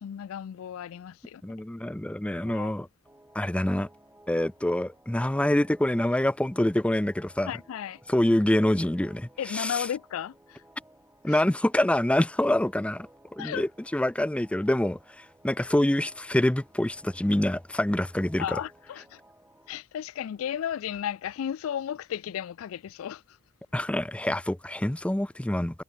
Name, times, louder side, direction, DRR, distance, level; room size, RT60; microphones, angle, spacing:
voice 1, 0.0-1.4 2.5-2.7 7.5-8.0 9.4-10.6 11.3-11.4 13.4-13.6 18.4-19.2 19.7-23.4, left 9 dB, 75° left, 0.3 m, -34 dB
voice 2, 1.4-2.9 3.3-3.9 4.3-7.5 8.1-9.9 11.2-18.6 23.7-25.8, left 1 dB, 5° left, 0.4 m, -26 dB
sound 1, 3.0-19.7, right 1 dB, 10° right, 2.4 m, -58 dB
head